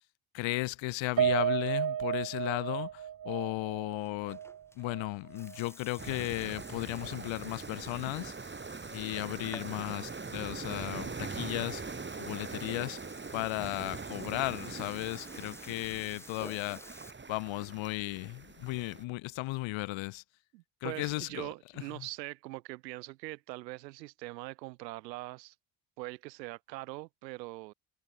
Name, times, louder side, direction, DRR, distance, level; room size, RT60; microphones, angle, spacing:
voice 1, 0.3-4.4 4.7-8.3 8.9-11.8 12.2-13.0 13.3-16.8 17.3-20.2 20.8-21.5 21.9-22.1, left 20 dB, 65° left, 1.5 m, -35 dB
Piano, 1.2-5.7 6.0-6.2 6.6-6.7, right 10 dB, 40° right, 1.5 m, -33 dB
Burping eructation, 4.0-17.1, left 1 dB, 5° left, 3.4 m, -53 dB
sound 1, 6.0-19.0, right 4 dB, 25° right, 3.4 m, -42 dB
voice 2, 20.5-25.5 26.0-27.7, right 20 dB, 85° right, 2.5 m, -42 dB
hypercardioid pair, 60°, 48 cm